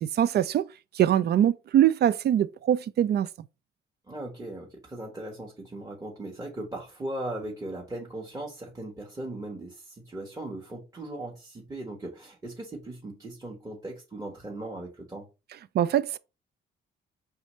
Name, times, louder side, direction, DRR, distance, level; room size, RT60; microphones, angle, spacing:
voice 1, 0.0-0.7 0.9-3.3 15.7-16.2, right 10 dB, 55° right, 0.4 m, -23 dB
voice 2, 4.1-15.3, right 1 dB, 15° right, 1.1 m, -38 dB
4.8 x 3.2 x 3.1 m
cardioid pair, 90°, 20 cm